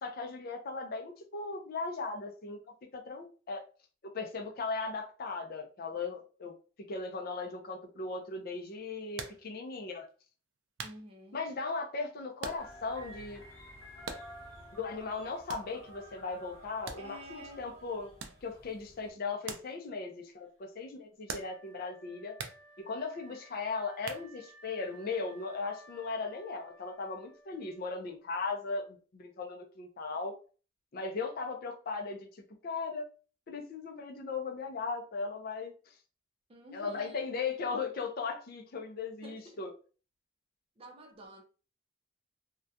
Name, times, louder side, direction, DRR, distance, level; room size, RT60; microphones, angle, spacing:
voice 1, 0.0-2.6 2.9-3.6 4.0-10.1 11.3-13.4 14.7-18.1 18.4-22.4 22.8-30.3 30.9-33.1 33.5-35.9 36.7-39.7, left 4 dB, 50° left, 0.4 m, -38 dB
sound 1, 9.1-9.5 10.1-10.2 10.8-11.1 12.4-12.9 13.2-13.3 14.0-14.5 15.5-15.8 16.9-17.4 18.2-18.5 19.4-19.8 20.0-20.1 21.3-21.7 22.4-22.7 24.0-24.6, right 5 dB, 80° right, 0.4 m, -42 dB
voice 2, 10.8-11.4 17.0-17.7 36.5-37.3 39.2-39.6 40.8-41.4, equal, 30° right, 0.5 m, -50 dB
sound 2, 12.6-19.1, equal, 15° left, 0.9 m, -51 dB
Wind instrument woodwind instrument, 21.3-28.3, right 2 dB, 65° left, 0.8 m, -58 dB
2.3 x 2.1 x 2.6 m
head